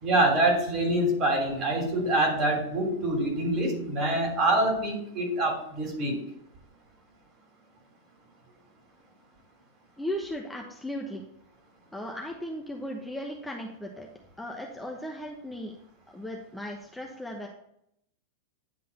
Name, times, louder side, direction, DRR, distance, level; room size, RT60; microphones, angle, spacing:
voice 1, 0.0-6.1, right 1 dB, 40° right, 2 dB, 3.0 m, -25 dB
voice 2, 10.0-11.3 11.9-14.1 14.4-15.8 16.1-17.5, equal, 5° left, 0 dB, 1.0 m, -36 dB
9.9 x 3.7 x 5.3 m, 0.74 s
hypercardioid pair, 120°, 0 cm